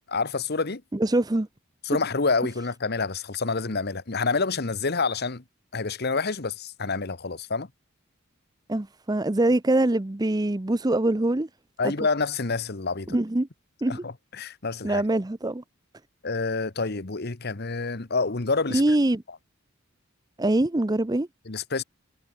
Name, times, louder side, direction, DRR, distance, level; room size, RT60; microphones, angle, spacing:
voice 1, 0.1-0.8 1.8-5.4 5.7-7.7 11.8-13.2 13.9-15.0 16.2-18.8 21.5-21.8, left 4 dB, 50° left, 1.2 m, -28 dB
voice 2, 0.9-1.5 8.7-11.5 11.8-11.9 13.1-13.5 13.8-14.0 14.8-15.6 18.7-19.2 20.4-21.3, right 1 dB, 20° right, 0.6 m, -23 dB
head